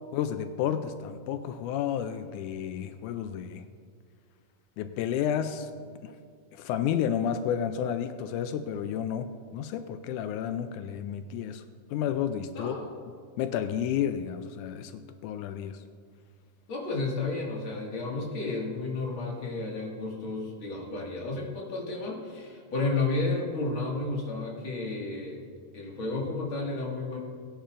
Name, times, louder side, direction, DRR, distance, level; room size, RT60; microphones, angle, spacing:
voice 1, 0.1-3.6 4.8-5.7 6.0-6.1 6.5-11.6 11.9-12.8 13.4-15.8, left 9 dB, 90° left, 9 dB, 1.7 m, -31 dB
voice 2, 12.5-12.9 16.7-25.4 25.7-27.2, left 3 dB, 40° left, -2 dB, 2.3 m, -32 dB
18.0 x 10.5 x 2.5 m, 2.2 s
omnidirectional pair, 4.1 m